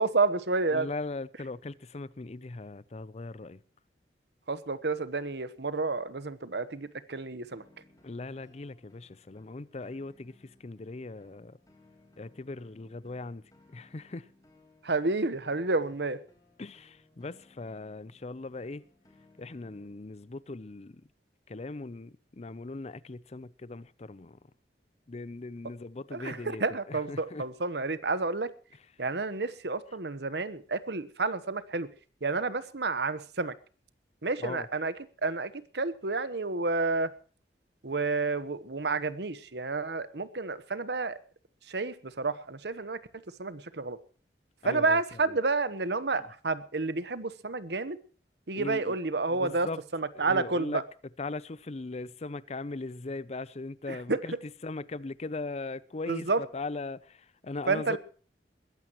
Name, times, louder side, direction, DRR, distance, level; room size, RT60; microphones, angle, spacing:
voice 1, 0.0-0.9 4.5-7.6 14.8-16.2 26.1-28.5 29.0-31.9 32.2-33.5 34.2-34.9 35.2-37.1 37.8-41.2 41.7-43.0 43.4-44.0 44.6-48.0 48.5-49.7 49.9-50.8 53.9-54.2 56.1-56.4 57.7-58.0, right 3 dB, 70° right, 1.1 m, -30 dB
voice 2, 0.7-3.6 8.0-11.6 12.2-13.4 13.7-14.3 16.6-18.8 19.4-21.0 21.5-24.4 25.1-27.4 34.4-34.7 44.6-45.2 48.5-49.0 49.3-49.8 50.1-50.8 51.2-58.0, left 3 dB, 40° left, 0.6 m, -39 dB
Guitar Music, 7.5-19.9, left 2 dB, 20° left, 4.2 m, -63 dB
21.0 x 15.0 x 3.1 m
head